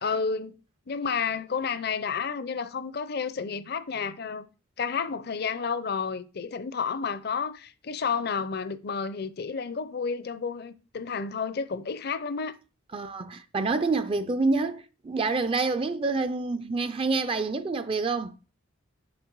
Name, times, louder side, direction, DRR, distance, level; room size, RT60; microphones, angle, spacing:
voice 1, 0.0-0.6 0.9-4.5 4.8-12.5, left 5 dB, 50° left, 0.5 m, -31 dB
voice 2, 12.9-18.3, right 3 dB, 25° right, 0.4 m, -27 dB
7.3 x 6.1 x 4.6 m
head